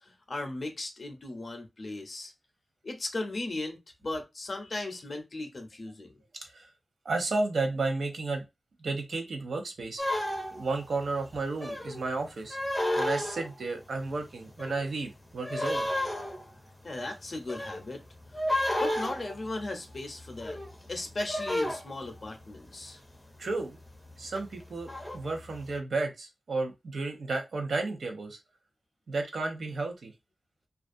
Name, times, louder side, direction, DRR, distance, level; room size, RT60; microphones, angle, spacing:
voice 1, 0.0-2.3 2.8-6.1 16.8-18.0 18.8-20.6 20.9-23.0, left 2 dB, 55° left, 0.6 m, -37 dB
voice 2, 7.0-8.4 8.8-10.0 10.5-12.6 13.0-15.9 23.4-23.8 24.2-28.4 29.1-30.1, right 3 dB, 80° right, 0.7 m, -32 dB
sound 1, 10.0-10.8 11.6-12.0 12.5-13.8 14.1-15.1 15.4-22.6 23.5-23.8 24.1-25.6, left 1 dB, 15° left, 0.6 m, -33 dB
2.4 x 2.3 x 2.5 m
cardioid pair, 60°, 0 cm